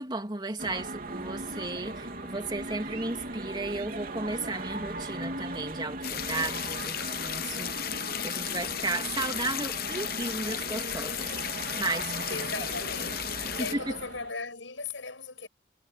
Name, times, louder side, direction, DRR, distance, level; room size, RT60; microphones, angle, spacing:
voice 1, 0.0-11.4 11.8-12.3 13.6-13.8, right 2 dB, 25° right, 3.0 m, -34 dB
sound 1, 0.6-14.3, right 2 dB, 50° right, 3.7 m, -38 dB
sound 2, 6.0-13.7, left 11 dB, 50° left, 0.9 m, -34 dB
voice 2, 12.3-15.5, left 4 dB, 80° left, 7.3 m, -38 dB
head